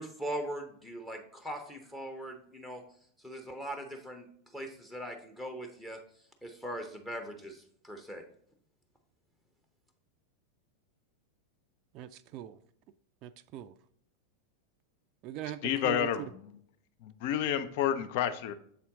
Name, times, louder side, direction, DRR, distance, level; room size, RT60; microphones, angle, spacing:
voice 1, 0.0-2.8 3.2-4.2 4.5-6.0 6.4-8.2, right 1 dB, 10° left, 4 dB, 0.8 m, -40 dB
voice 2, 11.9-12.6 13.2-13.7 15.2-16.1, right 12 dB, 45° right, 11 dB, 0.3 m, -41 dB
voice 3, 15.6-16.6 17.0-18.5, left 10 dB, 55° left, 11 dB, 0.5 m, -30 dB
7.0 x 4.3 x 3.6 m, 0.64 s
hypercardioid pair, 95°, 0 cm